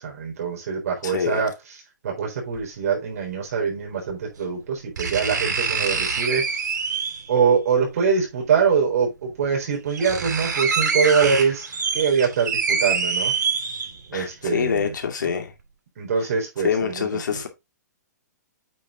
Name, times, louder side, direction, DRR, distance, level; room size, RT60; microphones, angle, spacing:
voice 1, 0.0-1.5 2.0-6.6 7.3-13.3 14.1-14.9 15.2-15.3 16.0-17.4, right 6 dB, 55° right, 3.9 m, -24 dB
voice 2, 1.0-1.4 14.1-15.5 16.6-17.5, left 7 dB, 90° left, 2.2 m, -25 dB
sound 1, 2.5-2.6 4.1-4.2 5.0-7.3 8.7-8.8 9.4-9.5 9.7-14.2 14.6-14.7, right 5 dB, 85° right, 3.2 m, -25 dB
8.5 x 4.7 x 3.6 m
hypercardioid pair, 170°, 10 cm